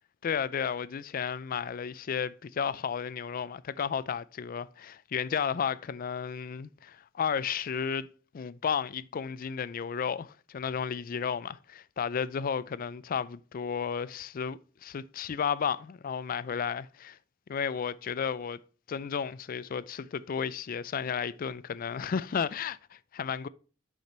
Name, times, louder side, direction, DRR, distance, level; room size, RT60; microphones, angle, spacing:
voice 1, 0.2-8.1 8.3-17.2 17.5-18.6 18.9-23.5, left 7 dB, 45° left, 0.4 m, -33 dB
6.6 x 5.0 x 4.3 m
head